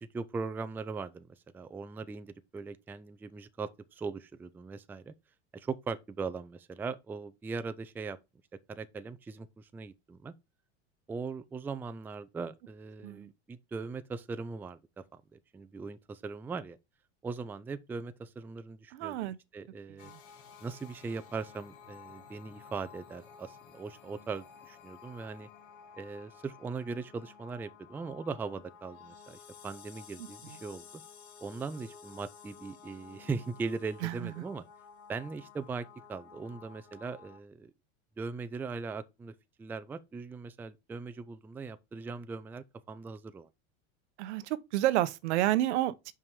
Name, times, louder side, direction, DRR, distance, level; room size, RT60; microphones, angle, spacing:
voice 1, 0.0-5.1 5.5-8.2 8.7-10.3 11.1-16.8 17.2-20.1 20.6-25.5 26.0-29.4 29.6-31.0 31.4-34.6 35.1-37.7 38.2-43.5, right 4 dB, 5° right, 0.3 m, -40 dB
voice 2, 18.9-19.4 34.0-34.3 44.2-46.1, right 15 dB, 85° right, 0.8 m, -30 dB
sound 1, 20.0-37.4, left 6 dB, 60° left, 2.3 m, -53 dB
5.6 x 4.7 x 5.3 m
supercardioid pair, 130°, 33 cm